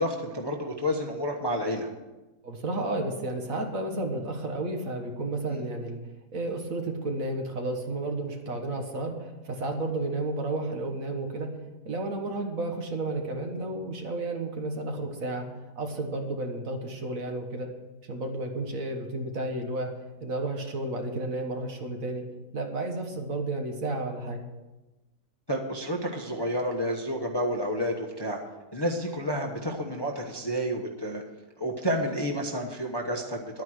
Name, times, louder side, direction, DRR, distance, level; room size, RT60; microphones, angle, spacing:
voice 1, 0.0-1.9 5.5-5.6 25.5-28.4 28.7-31.2 31.6-33.6, equal, 20° left, 1 dB, 1.0 m, -30 dB
voice 2, 2.4-6.0 6.3-11.5 11.9-15.4 15.8-17.7 18.0-19.9 20.2-22.2 22.5-24.5, right 2 dB, 55° right, 3 dB, 1.8 m, -32 dB
11.5 x 9.3 x 6.4 m, 1.1 s
omnidirectional pair, 1.7 m